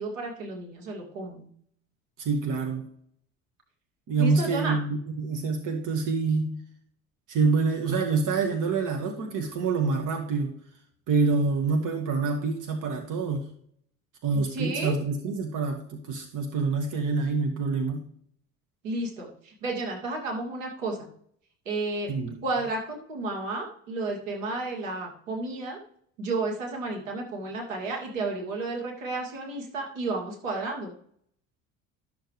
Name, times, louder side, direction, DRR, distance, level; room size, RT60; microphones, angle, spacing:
voice 1, 0.0-1.5 4.2-4.8 14.3-14.9 18.8-21.0 21.7-22.1 22.4-25.8 26.2-30.9, right 2 dB, 85° right, 0 dB, 2.5 m, -32 dB
voice 2, 2.2-2.9 4.1-6.6 7.3-10.6 11.1-13.5 14.2-18.0 22.1-22.4, right 4 dB, 55° right, 4 dB, 1.7 m, -26 dB
12.5 x 6.7 x 3.2 m, 0.63 s
hypercardioid pair, 65°, 38 cm